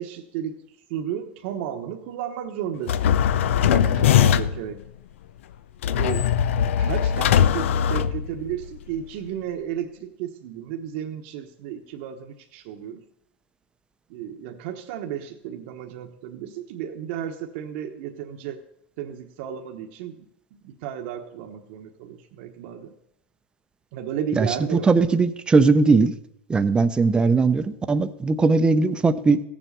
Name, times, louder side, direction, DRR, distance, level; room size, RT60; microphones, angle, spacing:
voice 1, 0.0-3.2 3.7-4.8 5.8-6.3 6.8-13.0 14.1-18.6 19.0-23.0 23.9-25.0, right 9 dB, 60° right, 4 dB, 1.1 m, -33 dB
sound 1, 2.9-4.7 5.8-8.7, left 9 dB, 90° left, 0.6 m, -20 dB
voice 2, 24.7-26.1 26.5-29.4, right 4 dB, 15° right, 11 dB, 0.7 m, -19 dB
16.5 x 7.5 x 6.8 m, 0.80 s
supercardioid pair, 135°, 7 cm